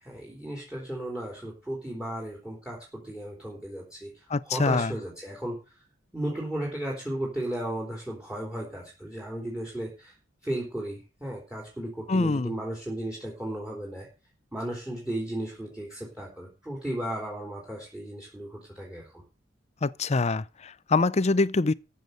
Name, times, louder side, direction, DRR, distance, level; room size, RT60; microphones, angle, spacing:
voice 1, 0.0-4.1 4.5-5.6 6.1-10.1 10.4-14.1 14.5-19.2, right 1 dB, 5° right, 3.7 m, -35 dB
voice 2, 4.3-4.9 12.1-12.5 19.8-21.7, left 3 dB, 35° left, 0.6 m, -25 dB
14.0 x 7.1 x 6.7 m
head